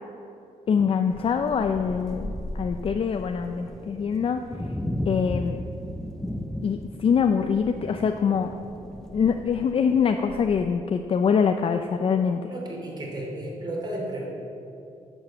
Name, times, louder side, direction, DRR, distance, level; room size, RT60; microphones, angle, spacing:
voice 1, 0.7-4.4 5.1-5.6 6.6-8.5 9.1-12.4, left 6 dB, 45° left, 6 dB, 0.5 m, -24 dB
sound 1, 1.1-10.7, left 1 dB, 5° left, 0.6 m, -36 dB
voice 2, 12.5-14.3, right 1 dB, 30° right, -1 dB, 3.0 m, -33 dB
10.5 x 7.1 x 7.7 m, 2.7 s
cardioid pair, 105°, 13 cm